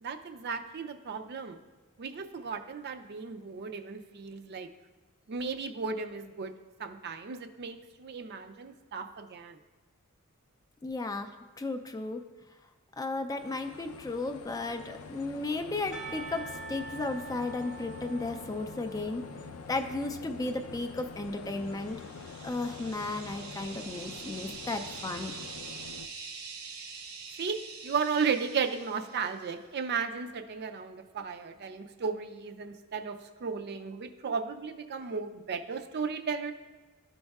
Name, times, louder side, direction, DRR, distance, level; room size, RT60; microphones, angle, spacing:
voice 1, 0.0-1.6 2.0-4.7 5.3-6.5 6.8-9.6 27.4-36.5, right 5 dB, 50° right, 7 dB, 0.4 m, -35 dB
voice 2, 10.8-11.3 11.6-12.2 13.0-19.3 19.7-22.0 22.4-25.4, left 2 dB, 15° left, 7 dB, 0.3 m, -34 dB
sound 1, 13.4-26.1, left 5 dB, 85° left, 0.4 m, -46 dB
Percussion / Church bell, 15.9-20.7, right 4 dB, 5° right, 0.7 m, -46 dB
sound 2, 21.6-29.4, right 5 dB, 80° right, 0.8 m, -45 dB
12.0 x 5.3 x 2.3 m, 1.3 s
head